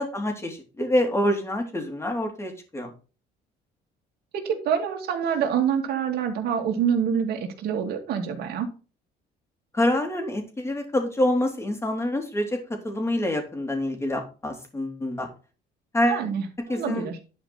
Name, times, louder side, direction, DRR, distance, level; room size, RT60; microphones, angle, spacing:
voice 1, 0.0-2.9 9.7-12.6 12.8-15.3 15.9-16.2 16.7-17.1, left 1 dB, 15° left, 4 dB, 3.0 m, -26 dB
voice 2, 4.3-8.7 16.1-17.2, right 8 dB, 70° right, 3 dB, 2.5 m, -26 dB
11.0 x 5.1 x 4.3 m, 0.34 s
cardioid pair, 110°, 17 cm